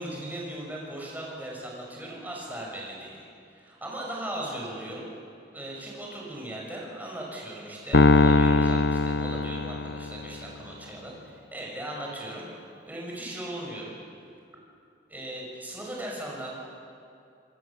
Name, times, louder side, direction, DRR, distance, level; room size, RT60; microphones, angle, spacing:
voice 1, 0.0-3.2 3.5-5.1 5.5-14.0 15.1-16.5, right 1 dB, 10° right, -3 dB, 6.1 m, -38 dB
Piano, 7.9-10.4, left 3 dB, 65° left, 0.6 m, -21 dB
27.0 x 21.0 x 7.3 m, 2.5 s
head